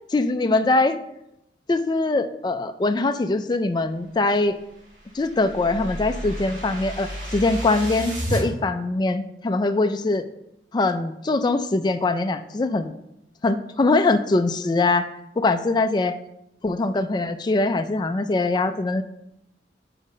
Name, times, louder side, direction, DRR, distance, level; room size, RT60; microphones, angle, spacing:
voice 1, 0.1-1.0 1.7-4.6 5.1-10.2 10.7-12.9 13.4-15.1 15.4-16.2 16.6-19.0, left 2 dB, 25° left, 8 dB, 0.3 m, -22 dB
sound 1, 4.4-8.4, right 1 dB, 85° right, 2.5 m, -32 dB
5.5 x 5.0 x 5.4 m, 0.83 s
head